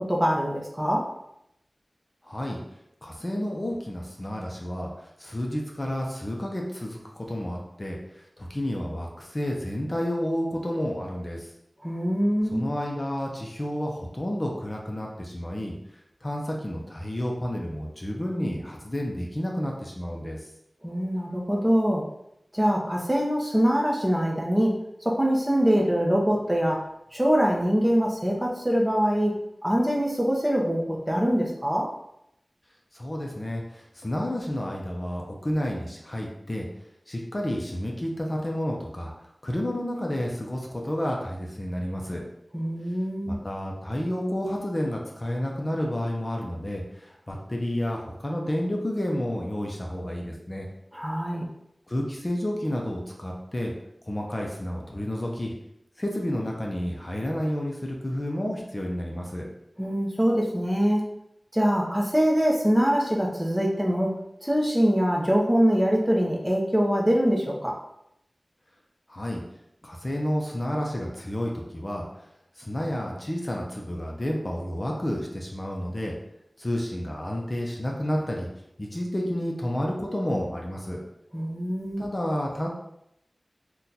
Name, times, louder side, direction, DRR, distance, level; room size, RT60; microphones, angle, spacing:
voice 1, 0.1-1.1 11.8-12.6 20.8-22.0 22.5-24.8 25.0-26.8 27.1-29.4 29.6-31.9 42.5-43.4 50.9-51.4 59.8-61.1 61.5-67.8 81.3-82.1, equal, 10° right, -2 dB, 0.7 m, -24 dB
voice 2, 2.2-2.6 3.0-11.5 12.5-20.5 32.9-36.7 37.1-42.2 43.3-50.7 51.9-53.7 54.0-55.5 56.0-59.5 69.1-69.4 69.8-72.3 72.6-76.1 76.6-78.5 78.8-81.0 82.0-82.7, equal, 35° left, -1 dB, 0.5 m, -30 dB
2.8 x 2.2 x 3.9 m, 0.79 s
wide cardioid pair, 60°, 0 cm